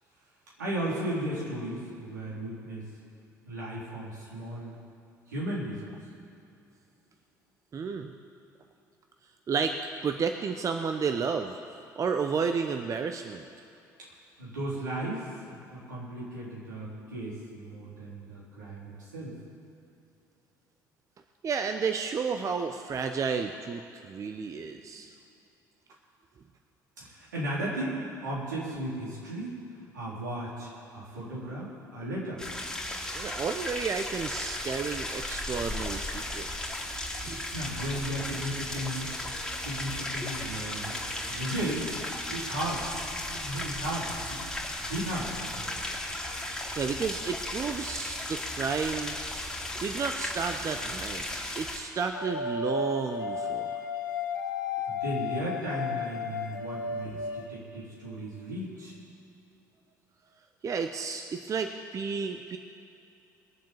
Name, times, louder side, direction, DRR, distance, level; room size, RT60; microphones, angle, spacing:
voice 1, 0.6-2.9 3.5-4.8 5.3-5.9 14.4-19.4 24.9-25.0 27.0-29.6 29.9-32.4 37.5-39.1 39.5-41.0 41.3-41.9 42.3-44.4 44.8-45.7 54.9-58.9, right 1 dB, 80° right, -7 dB, 4.2 m, -35 dB
voice 2, 7.7-8.1 9.5-11.6 12.0-13.4 21.4-25.1 33.1-36.8 37.2-37.5 46.8-49.2 49.8-51.2 51.6-53.8 57.1-57.4 60.6-62.6, right 5 dB, 35° right, 6 dB, 0.8 m, -32 dB
sound 1, 32.4-51.8, left 1 dB, 5° left, 2.9 m, -35 dB
sound 2, 52.1-57.5, left 5 dB, 80° left, 0.6 m, -33 dB
20.5 x 7.5 x 7.2 m, 2.7 s
figure-of-eight pair, 55°, 10 cm